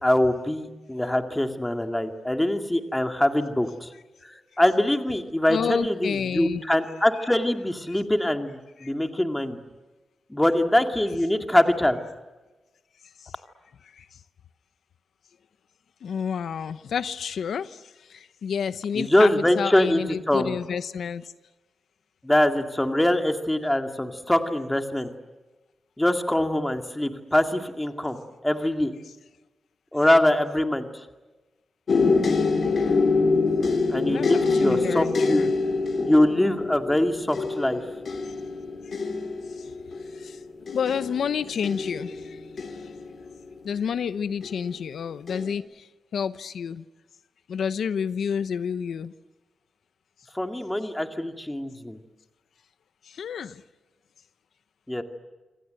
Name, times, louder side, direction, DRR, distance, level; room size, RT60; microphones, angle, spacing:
voice 1, 0.0-3.9 4.2-9.6 10.3-12.0 18.9-20.6 22.2-25.1 26.0-28.2 28.4-28.9 29.9-30.9 33.9-35.5 36.0-37.8 50.3-52.0 54.9-55.0, left 1 dB, 10° left, 6 dB, 2.2 m, -23 dB
voice 2, 5.5-6.6 7.9-8.0 8.8-8.9 13.2-13.3 13.9-14.1 16.0-21.3 34.1-35.5 39.6-39.7 40.1-40.4 40.7-42.7 43.6-46.8 47.5-49.1 53.0-53.6, left 7 dB, 85° left, 14 dB, 0.9 m, -30 dB
sound 1, 31.9-43.7 44.4-44.9 45.3-45.5, left 3 dB, 50° left, 3.2 m, -26 dB
27.0 x 26.5 x 7.8 m, 1.2 s
wide cardioid pair, 170°, 0 cm